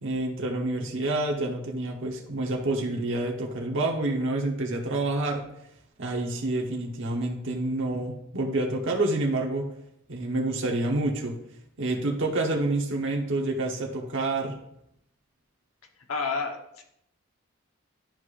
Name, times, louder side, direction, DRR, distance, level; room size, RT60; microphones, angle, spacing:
voice 1, 0.0-5.4 6.0-9.7 10.1-11.3 11.8-14.6, right 2 dB, 60° right, 0 dB, 1.1 m, -28 dB
voice 2, 16.1-16.8, left 4 dB, 80° left, 2 dB, 1.2 m, -30 dB
12.0 x 4.8 x 2.5 m, 0.78 s
head